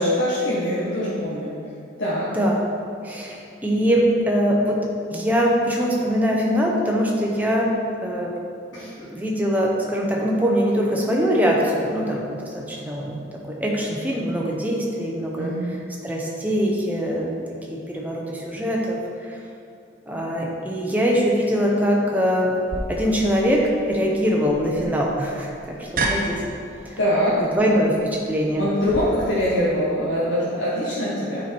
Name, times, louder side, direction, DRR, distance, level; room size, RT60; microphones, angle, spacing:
voice 1, 0.0-1.5 2.0-2.3 8.7-8.9 15.4-15.7 27.0-27.3 28.6-31.4, equal, 85° left, -9 dB, 1.3 m, -23 dB
voice 2, 3.0-4.8 5.1-7.7 8.0-8.3 8.7-15.8 16.0-17.3 17.7-19.4 20.1-22.5 22.9-26.4 26.8-27.0 27.4-28.7, equal, 10° right, -3 dB, 0.9 m, -23 dB
sound 1, 22.7-29.0, right 2 dB, 45° right, 0.7 m, -32 dB
8.9 x 4.6 x 4.4 m, 2.4 s
head